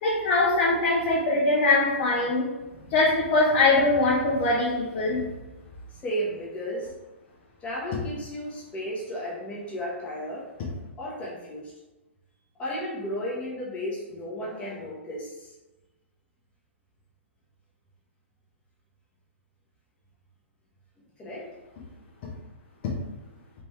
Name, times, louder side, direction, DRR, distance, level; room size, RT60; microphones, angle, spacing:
voice 1, 0.0-2.5 2.9-5.2, left 2 dB, 40° left, -5 dB, 1.0 m, -22 dB
voice 2, 6.0-7.0 7.6-10.5 11.0-11.7 12.5-15.5 21.2-21.5, equal, 20° left, -4 dB, 1.2 m, -34 dB
4.1 x 3.5 x 3.2 m, 1.1 s
figure-of-eight pair, 120°, 7 cm